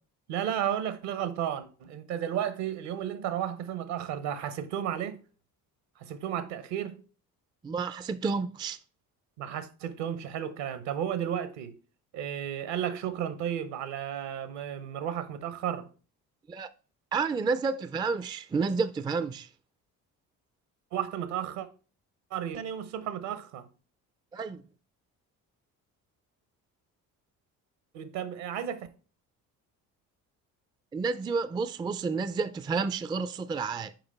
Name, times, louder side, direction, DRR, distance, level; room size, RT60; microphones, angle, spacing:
voice 1, 0.3-5.2 6.0-7.0 9.4-11.8 12.1-15.9 20.9-21.7 22.3-23.7 27.9-28.9, right 10 dB, 70° right, 1.0 m, -33 dB
voice 2, 7.6-8.8 16.5-16.7 17.1-19.5 24.3-24.6 30.9-33.9, right 4 dB, 10° right, 0.3 m, -30 dB
6.0 x 4.9 x 4.2 m
hypercardioid pair, 50°, 45 cm